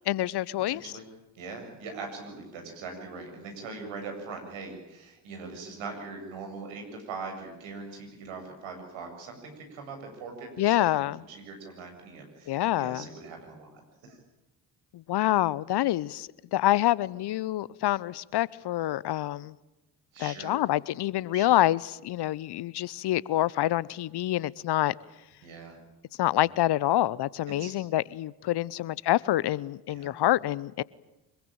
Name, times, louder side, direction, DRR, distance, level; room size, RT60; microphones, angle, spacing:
voice 1, 0.1-0.9 10.6-11.2 12.5-13.0 14.9-19.5 20.2-24.9 26.2-30.8, left 14 dB, 50° left, 0.9 m, -27 dB
voice 2, 0.7-1.1 1.3-14.2 20.1-20.6 21.3-21.5 25.4-25.8 26.4-26.5 27.6-27.7 29.9-30.1, right 4 dB, 70° right, 7.8 m, -41 dB
25.5 x 22.0 x 9.1 m
hypercardioid pair, 45°, 49 cm